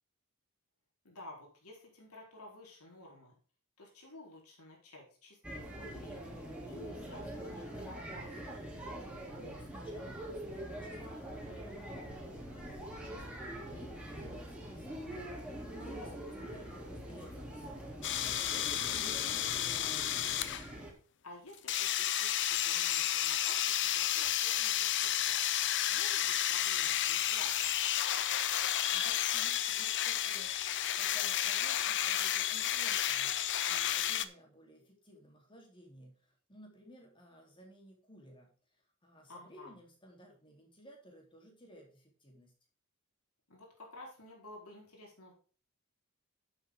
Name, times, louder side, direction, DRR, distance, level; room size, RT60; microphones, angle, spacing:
voice 1, 1.0-3.4 3.8-5.4 5.8-6.2 6.7-8.6 15.8-16.2 21.2-25.4 25.9-28.2 39.3-39.8 43.5-45.3, left 1 dB, 75° left, -1 dB, 4.4 m, -52 dB
sound 1, 5.4-20.9, right 1 dB, 5° right, 3.4 m, -44 dB
voice 2, 9.0-19.9 28.7-33.4 33.7-38.5 39.0-42.5, equal, 25° left, 0 dB, 3.8 m, -57 dB
sound 2, 18.0-20.6 21.7-34.3, left 11 dB, 55° left, 0.7 m, -32 dB
11.0 x 8.1 x 3.8 m, 0.38 s
head